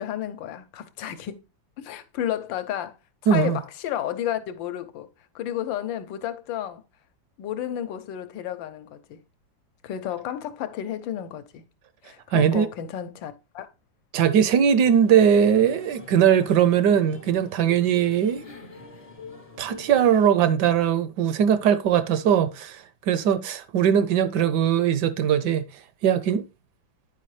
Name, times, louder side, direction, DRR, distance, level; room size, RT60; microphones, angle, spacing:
voice 1, 0.0-1.4 1.8-3.0 3.3-5.1 5.3-6.8 7.4-9.2 9.8-11.6 12.0-13.7, left 11 dB, 80° left, 1.4 m, -32 dB
voice 2, 3.3-3.6 12.3-12.7 14.1-18.4 19.6-25.6 26.0-26.4, right 8 dB, 75° right, 1.1 m, -20 dB
sound 1, 14.8-20.3, left 4 dB, 50° left, 0.4 m, -44 dB
9.9 x 4.6 x 3.1 m
omnidirectional pair, 2.0 m